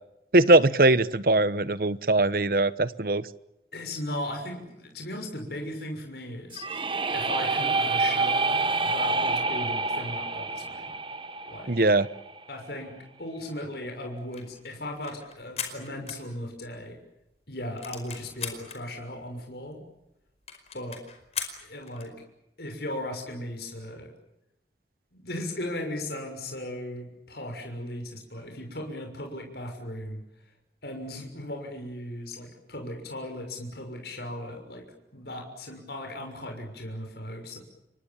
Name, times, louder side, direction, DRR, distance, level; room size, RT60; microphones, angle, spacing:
voice 1, 0.3-3.2 11.7-12.1, right 2 dB, 55° right, 16 dB, 1.1 m, -21 dB
voice 2, 3.7-6.6 7.1-10.9 11.4-11.7 12.5-17.0 17.5-19.8 20.7-21.0 21.6-22.1 22.6-24.1 25.1-30.2 30.8-34.8 35.1-37.6, left 1 dB, 65° left, 3 dB, 6.4 m, -37 dB
sound 1, 6.5-12.4, right 3 dB, 30° right, 1.4 m, -28 dB
sound 2, 14.2-16.8 17.2-17.3 17.5-18.8 19.4-19.5 19.7-19.8 20.0-20.1 20.5-22.2, left 7 dB, 35° left, 5.0 m, -38 dB
29.5 x 24.0 x 7.3 m, 0.88 s
head